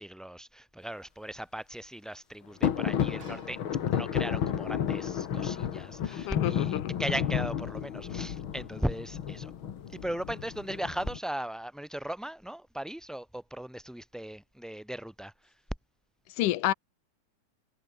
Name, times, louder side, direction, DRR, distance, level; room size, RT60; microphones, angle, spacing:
voice 1, 0.0-3.6 3.9-9.5 10.0-15.3, right 1 dB, ahead, 5.7 m, -37 dB
sound 1, 2.6-11.2, left 9 dB, 50° left, 1.6 m, -32 dB
sound 2, 3.2-4.5 5.2-5.3, right 3 dB, 35° right, 6.6 m, -53 dB
voice 2, 6.2-7.0 16.3-16.7, left 14 dB, 70° left, 2.3 m, -29 dB
omnidirectional pair, 4.1 m